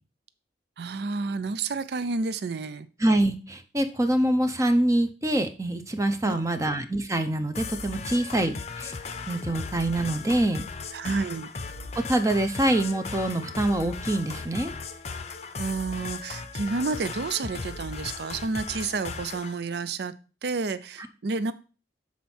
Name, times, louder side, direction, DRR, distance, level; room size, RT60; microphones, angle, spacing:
voice 1, 0.8-2.9 6.2-6.7 10.9-11.5 15.6-20.1 20.4-21.5, right 4 dB, 60° right, 13 dB, 0.5 m, -30 dB
voice 2, 3.0-8.9 9.3-10.7 12.0-14.7, right 1 dB, 15° right, 8 dB, 0.6 m, -25 dB
sound 1, 7.5-19.5, left 4 dB, 35° left, 0.6 m, -37 dB
7.4 x 4.2 x 4.3 m, 0.35 s
head